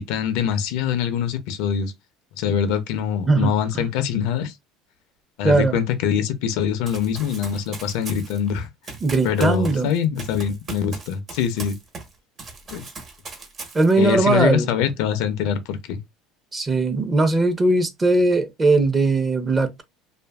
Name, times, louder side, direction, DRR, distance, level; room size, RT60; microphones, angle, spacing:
voice 1, 0.0-1.9 2.4-4.5 5.4-8.7 9.2-11.8 12.7-12.9 14.0-16.0, left 8 dB, 75° left, 0.5 m, -24 dB
voice 2, 3.2-3.9 5.4-5.8 9.0-9.9 13.7-14.7 16.5-19.8, right 2 dB, 20° right, 0.7 m, -19 dB
Run, 6.9-12.1 12.4-14.1, right 4 dB, 40° right, 1.1 m, -38 dB
2.6 x 2.4 x 2.3 m
supercardioid pair, 110°, 0 cm